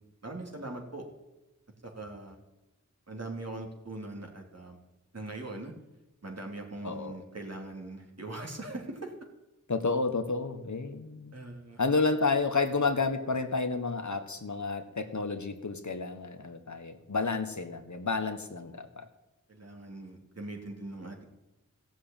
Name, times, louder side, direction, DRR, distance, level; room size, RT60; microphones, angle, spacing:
voice 1, 0.2-1.1 1.8-2.4 3.1-4.8 5.1-5.7 6.2-9.1 11.3-11.8 18.7-18.8 19.5-21.2, right 2 dB, 55° right, 1 dB, 3.5 m, -41 dB
voice 2, 6.8-7.2 9.7-11.3 11.8-19.1, left 4 dB, 65° left, 8 dB, 1.4 m, -30 dB
15.5 x 7.6 x 9.0 m, 1.0 s
wide cardioid pair, 40°, 31 cm